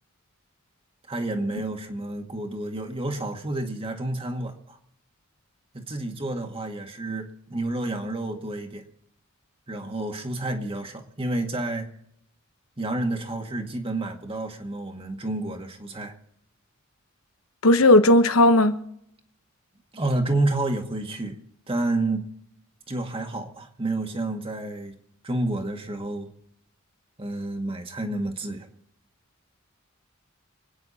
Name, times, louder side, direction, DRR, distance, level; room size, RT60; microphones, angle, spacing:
voice 1, 1.1-4.8 5.7-8.8 9.7-11.9 12.8-16.1 19.9-21.4 21.7-22.3 22.9-25.0 25.2-26.3 27.2-28.7, right 2 dB, 25° right, 2.0 m, -29 dB
voice 2, 17.6-18.7, left 1 dB, 85° left, 1.1 m, -16 dB
27.0 x 9.6 x 4.2 m
head